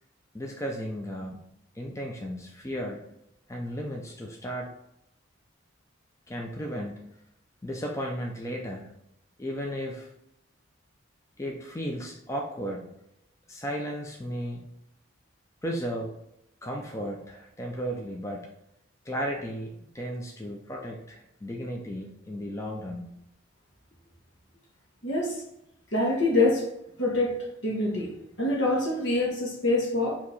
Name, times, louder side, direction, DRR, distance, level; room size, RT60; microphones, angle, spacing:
voice 1, 0.3-1.4 1.7-3.0 3.5-4.7 6.3-7.1 7.6-8.9 9.4-10.1 11.4-12.9 13.5-14.7 15.6-16.2 16.6-18.5 19.0-23.1, equal, 15° left, -1 dB, 0.4 m, -34 dB
voice 2, 25.0-25.4 25.9-26.7 27.0-27.4 27.6-30.2, left 2 dB, 65° left, 0 dB, 1.2 m, -25 dB
4.7 x 2.8 x 4.0 m, 0.80 s
head